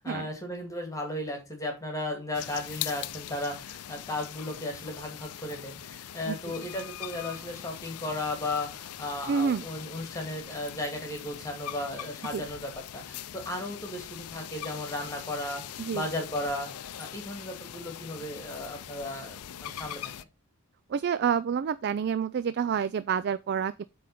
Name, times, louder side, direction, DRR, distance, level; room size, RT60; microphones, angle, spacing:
voice 1, 0.0-20.1, left 1 dB, 15° left, 2.0 m, -35 dB
sound 1, 2.3-20.2, left 11 dB, 90° left, 0.5 m, -41 dB
voice 2, 9.3-9.6 12.3-12.4 15.8-16.0 20.9-23.8, right 7 dB, 50° right, 0.3 m, -28 dB
8.5 x 3.8 x 5.3 m
head